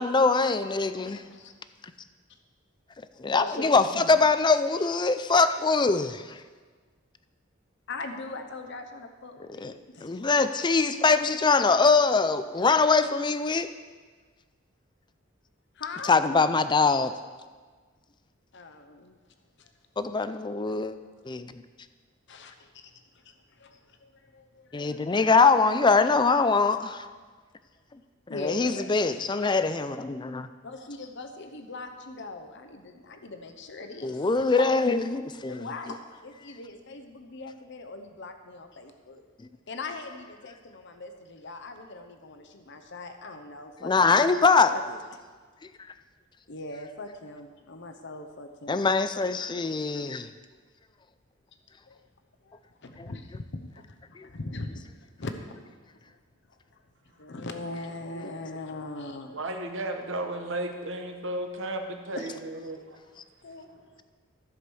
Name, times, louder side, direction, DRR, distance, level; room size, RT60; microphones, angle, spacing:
voice 1, 0.0-1.2 3.2-6.4 9.4-9.7 10.0-13.7 16.1-17.1 20.0-21.0 21.2-21.5 24.7-27.1 28.3-30.5 34.0-35.7 43.8-44.7 48.7-50.3 53.0-53.1 54.2-54.3, left 4 dB, 25° left, 11 dB, 0.4 m, -23 dB
voice 2, 0.9-1.5 3.3-4.2 4.5-4.9 7.9-10.2 15.8-16.2 18.5-19.2 19.6-19.7 22.3-22.9 23.2-24.7 28.3-29.3 30.6-34.8 35.5-39.2 39.7-44.2 44.7-45.0 46.5-48.8 51.9-52.0 52.4-52.5 52.8-54.8 55.2-55.6 57.2-59.5 62.2-62.3 63.4-63.7, left 3 dB, 60° left, 6 dB, 0.9 m, -40 dB
voice 3, 59.3-63.0, right 1 dB, 70° right, 4 dB, 1.0 m, -34 dB
14.5 x 5.0 x 6.2 m, 1.5 s
head